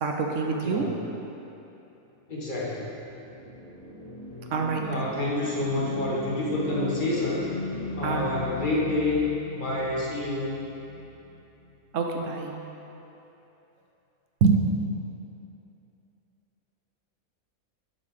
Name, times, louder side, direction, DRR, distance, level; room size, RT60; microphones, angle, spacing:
voice 1, 0.0-0.8 4.5-5.1 8.0-8.3 11.9-12.5 14.4-14.6, right 5 dB, 65° right, 2 dB, 1.0 m, -25 dB
voice 2, 2.3-3.0 4.8-7.5 7.9-10.6, left 2 dB, 35° left, -6 dB, 1.4 m, -28 dB
sound 1, 2.8-11.7, left 2 dB, 20° left, 1.6 m, -38 dB
10.5 x 5.6 x 3.3 m, 2.9 s
omnidirectional pair, 1.5 m